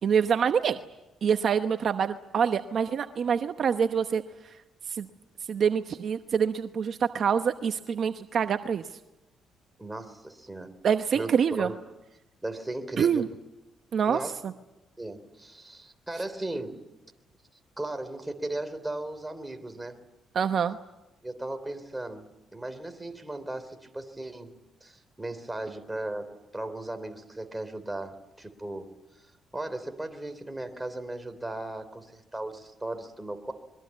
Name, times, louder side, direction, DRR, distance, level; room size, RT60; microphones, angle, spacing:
voice 1, 0.0-0.8 1.2-4.5 4.9-5.1 5.5-8.8 10.8-11.7 13.0-13.3 13.9-14.2 20.3-20.8, right 7 dB, 55° right, 8 dB, 0.9 m, -26 dB
voice 2, 9.8-10.8 11.1-11.8 12.4-13.3 14.0-14.4 15.0-16.8 17.8-20.0 21.2-24.5 24.8-28.9 29.5-33.5, right 2 dB, 10° right, 8 dB, 3.3 m, -36 dB
25.5 x 22.5 x 8.5 m, 0.99 s
cardioid pair, 90°, 0 cm